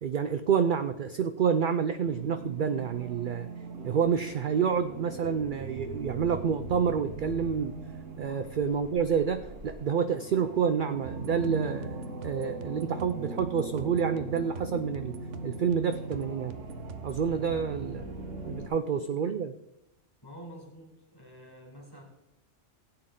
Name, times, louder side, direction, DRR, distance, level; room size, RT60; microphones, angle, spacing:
voice 1, 0.0-3.5 3.8-7.7 8.2-15.1 15.4-16.6 17.0-18.0 18.4-19.5, right 7 dB, 55° right, 9 dB, 0.6 m, -28 dB
sound 1, 2.0-18.7, right 2 dB, 90° right, 1.7 m, -40 dB
sound 2, 11.1-17.2, right 9 dB, 75° right, 1.0 m, -48 dB
voice 2, 18.7-19.4 20.2-22.0, equal, 20° left, 0 dB, 2.9 m, -49 dB
15.5 x 8.8 x 3.8 m, 0.89 s
omnidirectional pair, 1.3 m